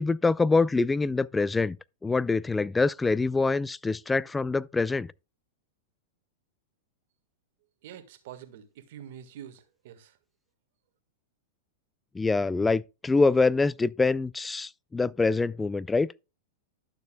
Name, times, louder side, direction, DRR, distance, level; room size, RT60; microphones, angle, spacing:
voice 1, 0.0-1.8 2.0-5.1 12.1-16.1, left 3 dB, 10° left, 0.3 m, -25 dB
voice 2, 7.8-10.2, right 10 dB, 65° right, 1.6 m, -46 dB
12.0 x 6.8 x 2.3 m
hypercardioid pair, 115°, 0 cm